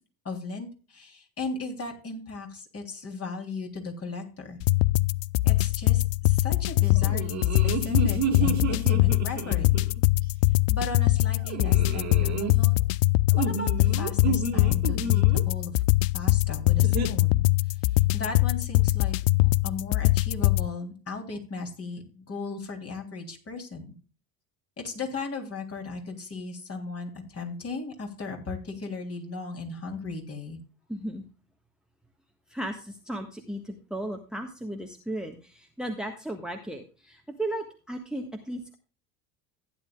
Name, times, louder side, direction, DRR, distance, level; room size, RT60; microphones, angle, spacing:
voice 1, 0.3-4.6 5.4-9.8 10.7-12.8 13.4-15.8 16.1-17.5 18.1-23.9 24.8-30.6, left 3 dB, 30° left, 2 dB, 3.4 m, -37 dB
sound 1, 4.6-20.7, left 19 dB, 55° left, 0.5 m, -23 dB
sound 2, 7.0-10.0 11.5-12.5 13.3-15.4 16.8-17.1, right 5 dB, 35° right, 2.0 m, -31 dB
voice 2, 30.9-31.3 32.5-38.8, right 1 dB, ahead, 4 dB, 1.5 m, -35 dB
15.0 x 10.5 x 2.3 m, 0.36 s
figure-of-eight pair, 60°, 48 cm